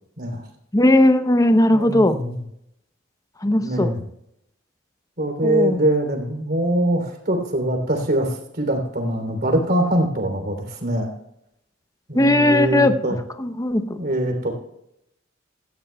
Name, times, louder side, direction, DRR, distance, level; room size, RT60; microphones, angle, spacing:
voice 1, 0.7-2.2 3.4-3.9 5.4-5.8 12.1-12.9 13.4-13.8, left 1 dB, 20° left, 10 dB, 0.7 m, -17 dB
voice 2, 1.7-2.4 3.6-4.0 5.2-11.1 12.1-13.2 14.0-14.5, right 1 dB, 50° right, 4 dB, 3.2 m, -23 dB
17.0 x 14.0 x 2.3 m, 0.78 s
head